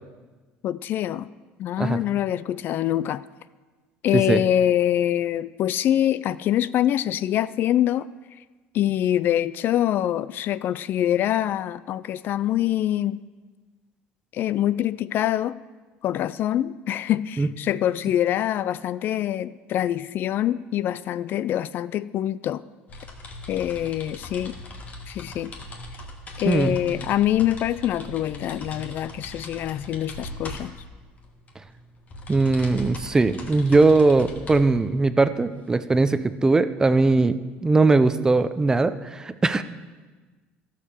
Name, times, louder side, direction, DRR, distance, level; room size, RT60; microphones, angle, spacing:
voice 1, 0.6-1.3 1.6-3.2 4.0-8.1 8.7-13.2 14.3-15.5 16.0-22.6 23.5-24.5 25.1-25.5 26.4-30.7, left 11 dB, 50° left, 17 dB, 0.3 m, -24 dB
sound 1, 22.9-36.6, left 1 dB, 35° left, 1.8 m, -40 dB
voice 2, 26.5-26.8 32.3-39.6, right 3 dB, 15° right, 13 dB, 0.5 m, -20 dB
13.0 x 6.7 x 6.8 m, 1.3 s
cardioid pair, 120°, 4 cm